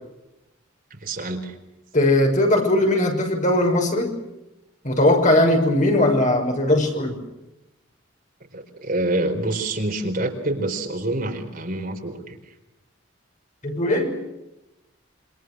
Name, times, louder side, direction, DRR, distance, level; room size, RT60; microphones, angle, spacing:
voice 1, 0.9-1.5 8.5-12.4, right 2 dB, 45° right, 3 dB, 4.6 m, -26 dB
voice 2, 1.9-4.2 4.8-7.2 13.6-14.2, left 1 dB, 40° left, 3 dB, 6.5 m, -19 dB
27.5 x 26.5 x 6.4 m, 0.97 s
head